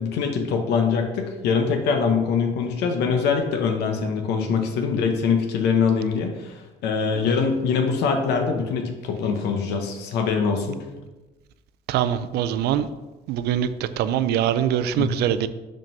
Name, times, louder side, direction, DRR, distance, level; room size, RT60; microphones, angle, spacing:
voice 1, 0.0-10.9 15.0-15.2, left 5 dB, 80° left, 4 dB, 0.8 m, -23 dB
voice 2, 11.9-12.9 13.3-15.5, right 10 dB, 75° right, 13 dB, 0.4 m, -23 dB
5.2 x 3.7 x 5.4 m, 1.1 s
cardioid pair, 110°, 17 cm